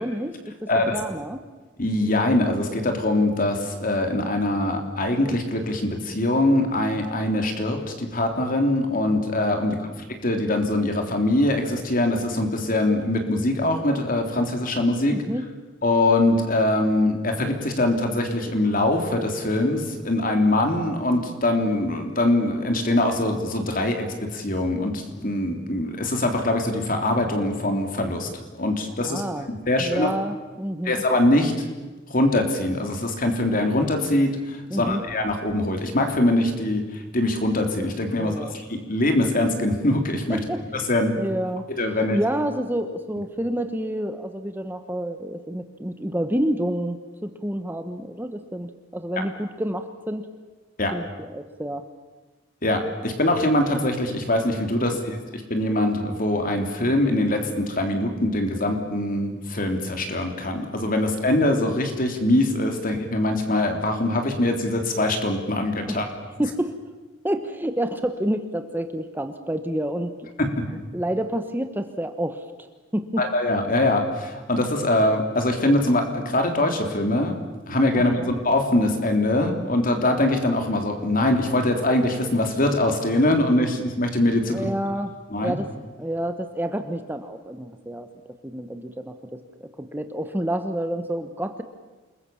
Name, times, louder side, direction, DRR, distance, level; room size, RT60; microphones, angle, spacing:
voice 1, 0.0-1.4 15.1-15.4 29.0-29.5 29.8-30.9 34.7-35.0 38.2-38.5 40.3-40.6 41.2-41.7 42.1-50.3 50.9-51.8 54.9-55.0 65.9-66.0 66.4-66.7 67.2-70.1 70.7-72.7 72.9-73.3 77.9-78.3 84.5-85.1 85.4-85.7 86.0-88.1 88.4-91.6, right 1 dB, 10° right, 7 dB, 1.1 m, -29 dB
voice 2, 0.7-1.0 1.8-15.2 15.8-24.1 24.3-28.3 28.6-29.2 29.5-30.1 30.8-31.5 32.1-38.4 38.7-40.4 40.9-41.1 41.7-42.2 50.8-50.9 52.6-66.1 70.4-70.5 73.2-77.3 77.7-84.7 85.3-85.6, left 1 dB, 45° left, 4 dB, 3.5 m, -23 dB
28.5 x 21.0 x 7.2 m, 1.3 s
head